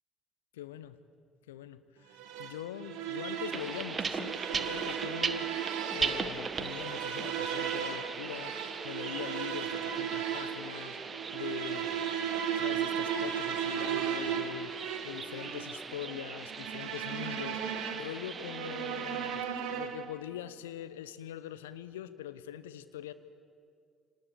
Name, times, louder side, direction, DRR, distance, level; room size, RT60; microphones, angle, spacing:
voice 1, 0.6-1.0 1.5-5.7 5.9-11.0 11.3-11.9 12.3-14.7 15.0-17.6 17.9-23.1, left 11 dB, 80° left, 13 dB, 0.8 m, -43 dB
sound 1, 2.2-20.2, right 8 dB, 70° right, 1.9 m, -36 dB
sound 2, 3.5-19.4, right 5 dB, 35° right, 1.3 m, -39 dB
25.5 x 19.0 x 8.5 m, 2.3 s
figure-of-eight pair, 55°, 0 cm